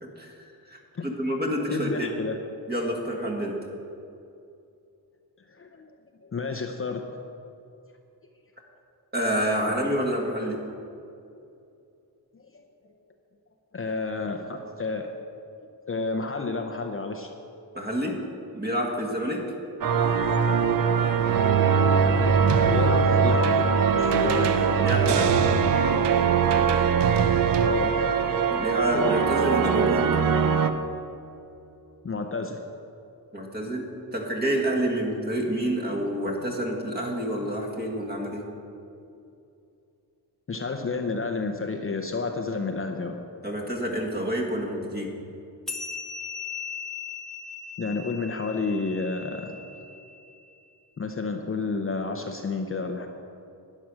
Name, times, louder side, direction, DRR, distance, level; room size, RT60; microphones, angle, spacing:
voice 1, 0.0-2.1 2.7-3.6 9.1-10.6 17.8-18.2 18.5-19.5 24.8-25.4 28.5-30.1 33.3-38.5 43.4-45.1, equal, 25° right, 0 dB, 1.9 m, -28 dB
voice 2, 1.7-2.4 5.5-5.9 6.2-7.0 12.3-12.4 13.7-15.1 15.9-17.3 22.6-23.7 23.9-24.6 27.6-27.9 32.0-32.6 40.5-43.2 47.8-49.6 51.0-53.1, left 3 dB, 35° left, 4 dB, 0.7 m, -30 dB
sound 1, 19.8-30.7, right 6 dB, 55° right, 0.8 m, -22 dB
sound 2, 22.5-27.7, right 8 dB, 90° right, 0.7 m, -32 dB
sound 3, 45.7-50.5, left 5 dB, ahead, 1.0 m, -38 dB
12.0 x 9.9 x 6.3 m, 2.7 s
wide cardioid pair, 145°, 40 cm